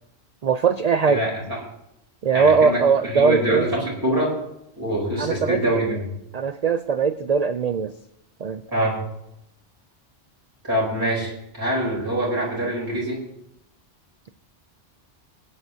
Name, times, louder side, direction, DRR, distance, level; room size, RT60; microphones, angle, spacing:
voice 1, 0.4-1.3 2.2-3.7 5.2-5.6 6.3-7.9 8.4-8.6, right 5 dB, 65° right, 11 dB, 0.4 m, -20 dB
voice 2, 2.3-4.3 4.8-6.0 8.7-9.0 10.6-13.2, right 1 dB, 15° right, -5 dB, 3.9 m, -24 dB
23.5 x 9.8 x 2.8 m, 0.80 s
omnidirectional pair, 1.2 m